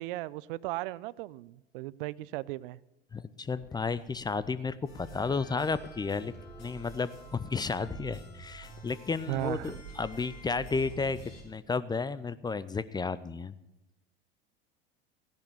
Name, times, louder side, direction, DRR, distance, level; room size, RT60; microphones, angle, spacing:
voice 1, 0.0-2.8 9.3-9.7, right 17 dB, 60° right, 21 dB, 0.5 m, -36 dB
voice 2, 3.1-6.3 6.6-11.2 11.4-13.5, left 4 dB, 15° left, 16 dB, 0.5 m, -32 dB
sound 1, 3.6-9.6, left 6 dB, 45° left, 1.8 m, -59 dB
sound 2, 4.9-11.4, right 3 dB, 75° left, 5.4 m, -48 dB
14.5 x 10.5 x 7.0 m, 0.94 s
hypercardioid pair, 75°, 30 cm